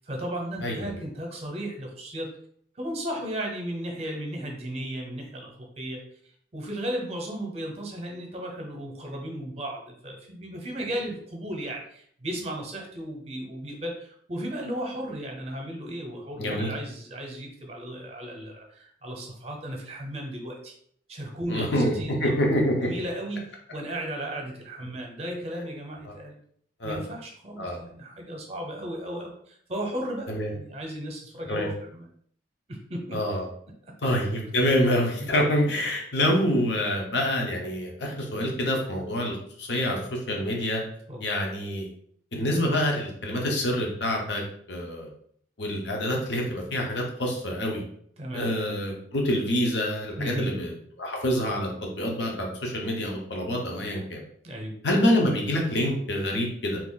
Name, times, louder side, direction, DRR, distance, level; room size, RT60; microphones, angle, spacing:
voice 1, 0.0-2.3 2.8-6.0 6.5-20.7 21.1-22.3 22.8-26.4 26.8-32.1 32.7-33.2 35.2-35.3 41.1-41.2 48.2-48.5 50.2-50.6 54.4-54.8, right 1 dB, 35° right, 1 dB, 0.7 m, -35 dB
voice 2, 16.4-16.7 21.5-22.9 26.1-26.2 26.8-27.0 27.6-27.8 30.3-30.5 31.5-31.7 33.1-33.5 34.0-40.8 41.2-41.9 42.3-44.4 44.7-45.1 45.6-47.8 48.3-50.7 51.0-54.2 54.8-56.8, left 1 dB, 70° left, 0 dB, 0.8 m, -26 dB
2.9 x 2.4 x 3.8 m, 0.63 s
head